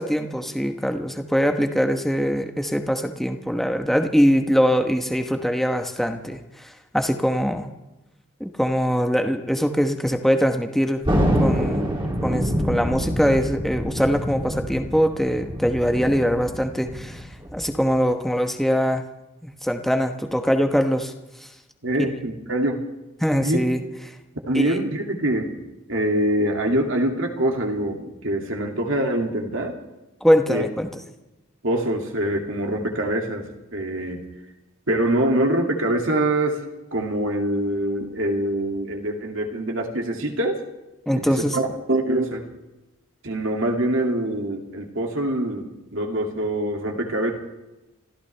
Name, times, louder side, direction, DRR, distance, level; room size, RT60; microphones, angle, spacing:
voice 1, 0.0-7.7 8.4-11.0 11.4-19.0 19.4-21.1 23.2-23.8 24.5-24.7 30.2-30.9 41.1-41.6, equal, ahead, 5 dB, 1.1 m, -22 dB
Thunder, 11.0-17.9, equal, 20° right, 2.8 m, -26 dB
voice 2, 21.8-22.8 23.4-23.6 24.5-25.6 25.9-29.7 30.5-30.7 31.6-34.2 34.9-36.6 36.9-40.6 41.1-42.4 43.2-45.7 45.9-47.3, right 1 dB, 60° right, 2 dB, 2.4 m, -24 dB
29.0 x 14.5 x 3.4 m, 1.0 s
head